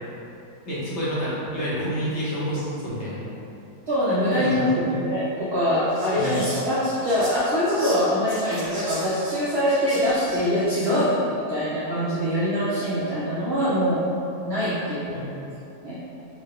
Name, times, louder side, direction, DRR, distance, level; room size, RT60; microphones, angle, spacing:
voice 1, 0.7-3.2 4.3-5.0 6.2-6.4 10.9-11.0 15.1-15.3, equal, 55° left, -8 dB, 0.9 m, -29 dB
voice 2, 3.9-14.1 14.5-15.2 15.8-16.0, equal, 65° right, -9 dB, 0.6 m, -23 dB
Whispering, 5.9-11.0, right 1 dB, 40° right, 1.5 m, -38 dB
3.6 x 2.1 x 3.7 m, 2.8 s
omnidirectional pair, 1.7 m